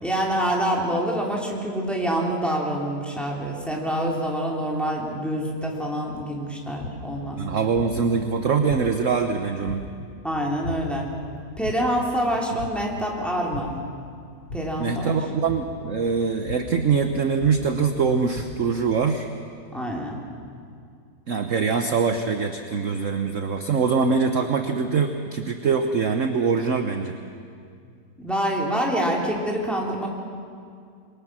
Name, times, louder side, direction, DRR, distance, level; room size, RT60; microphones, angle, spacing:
voice 1, 0.0-7.4 10.2-11.1 11.6-13.7 14.5-15.2 19.7-20.2 28.2-30.1, equal, ahead, -2 dB, 3.4 m, -26 dB
sound 1, 6.1-6.2 6.8-7.2 7.7-8.2 8.7-9.1 9.6-10.1 10.6-11.1 11.6-12.1 12.6-13.0 13.5-13.9 14.5-14.9 15.5-15.9 16.5-16.9 17.4-17.9 18.3-18.7, left 2 dB, 60° left, 2.1 m, -35 dB
voice 2, 7.4-9.9 14.8-19.3 21.3-27.2, right 5 dB, 50° right, 6 dB, 1.2 m, -23 dB
27.5 x 22.5 x 6.3 m, 2.3 s
omnidirectional pair, 1.9 m